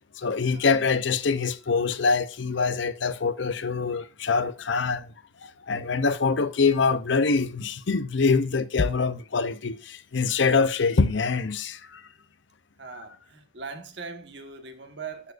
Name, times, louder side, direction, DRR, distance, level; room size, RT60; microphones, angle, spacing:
voice 1, 0.2-5.1 5.4-12.0, left 4 dB, 70° left, 0.7 m, -24 dB
voice 2, 12.8-15.3, right 5 dB, 60° right, 1.4 m, -40 dB
12.5 x 4.8 x 2.5 m
head